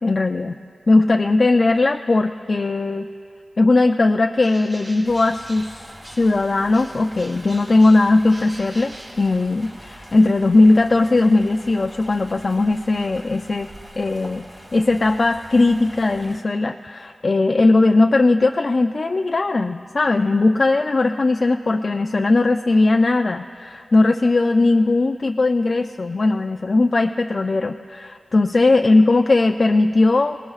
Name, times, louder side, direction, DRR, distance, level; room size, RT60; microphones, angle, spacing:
voice 1, 0.0-0.6 0.9-3.1 3.6-13.7 14.0-14.4 14.7-30.4, left 2 dB, 45° left, 5 dB, 0.3 m, -18 dB
Bird, 4.3-6.4 6.7-9.8, right 1 dB, 40° right, 4.8 m, -43 dB
sound 1, 5.0-16.4, equal, 20° right, 2.0 m, -43 dB
25.5 x 19.0 x 2.4 m, 2.4 s
wide cardioid pair, 115°, 0 cm